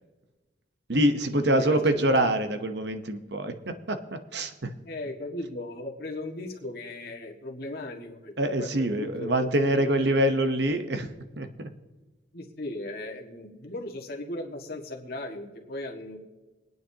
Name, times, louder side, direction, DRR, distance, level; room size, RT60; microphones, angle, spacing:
voice 1, 0.9-4.7 8.4-11.1 11.4-11.7, right 1 dB, 65° right, 8 dB, 0.9 m, -25 dB
voice 2, 1.4-2.4 4.9-8.7 9.0-10.3 12.3-16.2, left 1 dB, 55° left, 1 dB, 1.7 m, -37 dB
24.5 x 9.4 x 2.9 m, 1.2 s
head